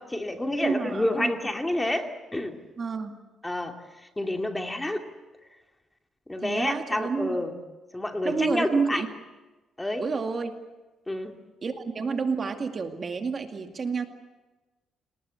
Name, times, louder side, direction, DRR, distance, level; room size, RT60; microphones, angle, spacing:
voice 1, 0.0-2.6 3.4-3.8 4.2-5.1 6.3-7.5 7.9-9.0 9.8-10.0 11.1-11.4, left 1 dB, 10° left, 4 dB, 2.4 m, -29 dB
voice 2, 0.6-1.3 2.8-3.2 6.4-7.5 8.2-9.1 10.0-10.5 11.6-14.1, right 5 dB, 40° right, 5 dB, 2.3 m, -29 dB
28.5 x 19.0 x 8.2 m, 1.2 s
cardioid pair, 90°, 0 cm